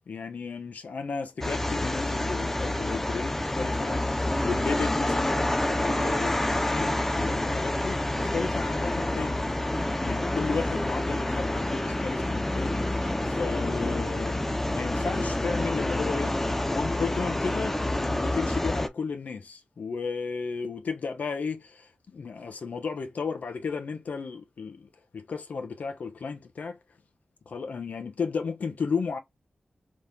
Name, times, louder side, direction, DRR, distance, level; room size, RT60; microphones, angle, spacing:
voice 1, 0.1-9.4 10.0-14.5 14.7-16.4 16.7-24.9 25.1-26.8 27.5-29.2, left 5 dB, 60° left, 0.8 m, -34 dB
sound 1, 1.4-18.9, left 1 dB, 10° left, 0.3 m, -28 dB
3.5 x 3.2 x 2.7 m
wide cardioid pair, 175°, 3 cm